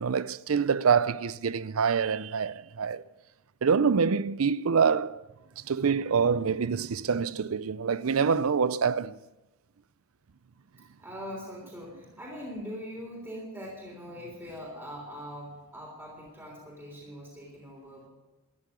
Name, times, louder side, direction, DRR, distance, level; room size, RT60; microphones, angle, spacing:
voice 1, 0.0-3.0 3.6-5.2 5.7-9.2, right 6 dB, 75° right, 0.5 m, -26 dB
voice 2, 11.0-18.1, equal, 10° right, 3.4 m, -42 dB
13.0 x 10.5 x 9.5 m
head